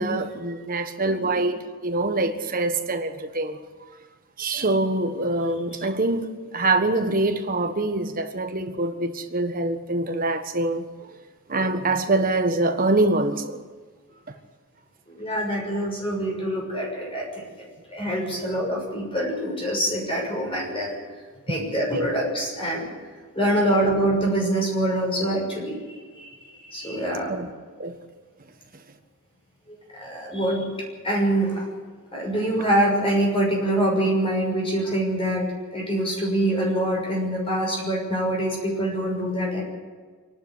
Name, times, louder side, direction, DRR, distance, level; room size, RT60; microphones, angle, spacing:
voice 1, 0.0-3.9 4.4-11.1 11.5-13.7 21.9-22.0 27.3-27.5 27.8-28.0, right 2 dB, 40° right, 1.5 m, -25 dB
voice 2, 15.1-17.5 17.9-21.0 21.5-22.9 23.3-27.3 29.7-30.7 31.0-31.7 32.1-35.5 35.7-39.6, right 1 dB, 25° left, 6.5 m, -25 dB
25.5 x 11.5 x 9.7 m
head